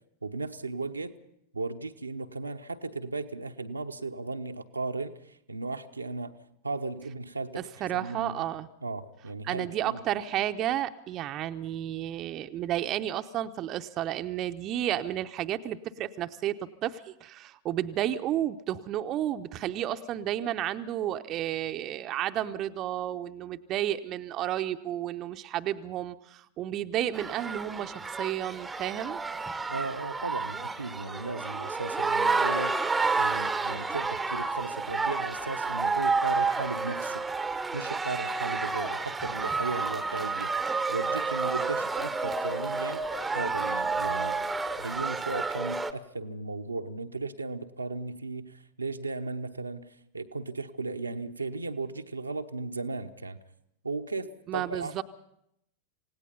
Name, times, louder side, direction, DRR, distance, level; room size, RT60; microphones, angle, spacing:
voice 1, 0.2-1.1 1.5-6.4 6.6-8.3 8.8-10.0 29.7-32.8 33.2-37.2 37.7-40.5 40.9-43.0 43.3-49.9 50.1-53.4 53.8-55.0, right 3 dB, 80° right, 5 dB, 1.0 m, -36 dB
voice 2, 7.6-8.7 9.4-29.2 54.5-55.0, right 12 dB, 35° right, 8 dB, 0.8 m, -32 dB
sound 1, 27.1-45.9, right 4 dB, 10° right, 0.9 m, -30 dB
27.5 x 17.5 x 5.5 m, 0.76 s
figure-of-eight pair, 90°, 0 cm